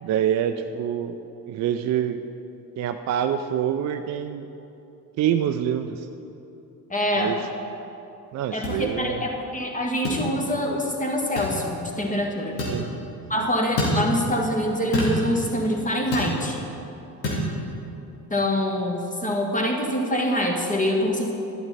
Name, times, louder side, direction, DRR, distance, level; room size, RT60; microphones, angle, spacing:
voice 1, 0.0-1.2 1.5-2.2 2.8-4.5 5.2-6.1 7.2-7.4 8.3-9.3 12.6-12.9 13.4-13.5 17.2-17.5, right 9 dB, 35° right, 7 dB, 0.5 m, -26 dB
voice 2, 6.9-7.4 8.5-12.6 13.3-16.6 18.3-21.3, equal, 15° left, 1 dB, 1.7 m, -25 dB
sound 1, 8.6-8.8 10.0-10.2 11.4-11.6 12.6-12.8 13.8-14.0 14.9-15.2 16.1-16.3 17.2-17.4, left 1 dB, 80° left, 2.2 m, -26 dB
11.5 x 11.0 x 4.1 m, 2.9 s
figure-of-eight pair, 55°, 50 cm